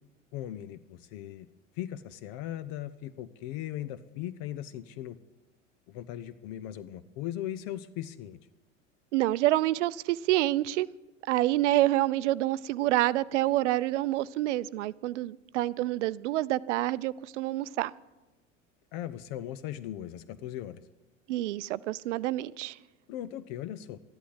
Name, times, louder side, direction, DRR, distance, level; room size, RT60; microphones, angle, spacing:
voice 1, 0.3-1.5 1.8-5.2 5.9-8.4 18.9-20.8 23.1-24.0, left 12 dB, 50° left, 15 dB, 0.8 m, -38 dB
voice 2, 9.1-10.9 11.3-17.9 21.3-22.8, right 15 dB, 65° right, 18 dB, 0.6 m, -27 dB
13.0 x 11.5 x 7.9 m, 1.1 s
figure-of-eight pair, 80°, 38 cm